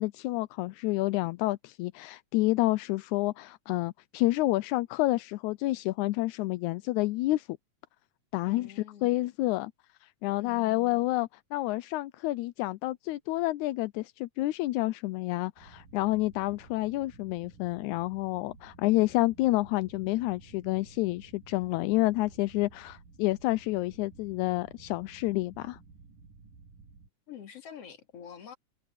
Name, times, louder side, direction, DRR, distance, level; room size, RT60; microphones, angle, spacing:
voice 1, 0.0-7.5 8.3-9.7 10.0-25.8, left 19 dB, 80° left, 1.8 m, -29 dB
voice 2, 8.4-9.4 10.4-11.1 27.3-28.6, left 8 dB, 50° left, 3.2 m, -47 dB
sound 1, 15.6-27.1, right 4 dB, 85° right, 7.2 m, -54 dB
omnidirectional pair, 3.8 m